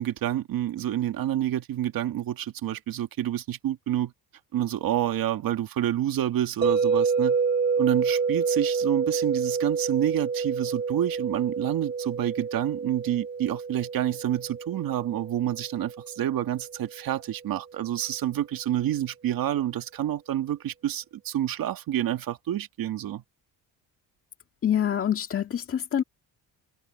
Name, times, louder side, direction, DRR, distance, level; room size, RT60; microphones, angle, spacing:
voice 1, 0.0-4.1 4.5-7.4 7.8-23.2, right 12 dB, 60° right, 1.9 m, -28 dB
sound 1, 6.6-16.7, right 5 dB, 25° right, 5.6 m, -28 dB
voice 2, 24.6-26.0, left 9 dB, 35° left, 1.9 m, -26 dB
cardioid pair, 145°, 40 cm